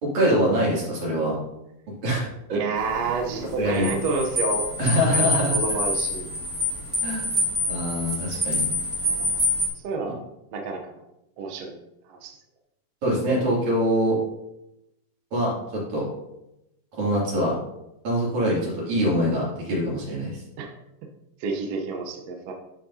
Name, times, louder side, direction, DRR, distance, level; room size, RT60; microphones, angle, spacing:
voice 1, 0.0-1.4 2.0-2.3 3.6-3.9 4.8-5.5 7.0-7.3 7.7-8.6 13.0-14.2 15.3-15.5 15.9-16.0 17.0-17.6 18.0-20.4, equal, 55° right, -6 dB, 4.0 m, -23 dB
voice 2, 2.5-4.7 5.1-6.2 9.8-10.2 10.5-10.8 11.4-11.7 12.1-12.3 20.6-20.7 21.4-22.5, right 4 dB, 75° right, 2 dB, 1.5 m, -29 dB
sound 1, 2.8-9.7, left 1 dB, 30° right, 0.5 m, -26 dB
12.0 x 5.2 x 2.8 m, 0.88 s
omnidirectional pair, 4.1 m